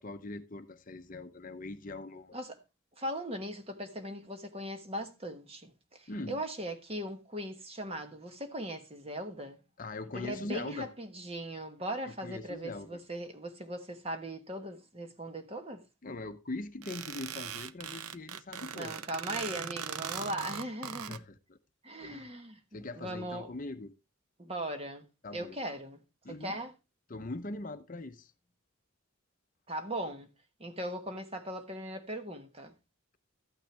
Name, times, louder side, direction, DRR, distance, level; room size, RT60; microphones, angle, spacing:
voice 1, 0.0-2.4 6.1-6.4 9.8-10.9 12.2-13.0 16.0-19.0 21.1-21.6 22.0-22.3 22.7-23.9 25.2-25.6 26.2-26.6 27.1-28.3, left 2 dB, 40° left, 0.7 m, -41 dB
voice 2, 3.0-9.6 10.1-15.8 18.7-21.2 21.8-22.6 22.9-23.5 24.4-25.1 25.3-26.0 26.3-26.7 29.7-30.3 30.6-32.7, right 1 dB, 25° right, 1.3 m, -39 dB
sound 1, 16.8-21.2, right 8 dB, 85° right, 0.7 m, -40 dB
13.0 x 9.0 x 3.3 m
head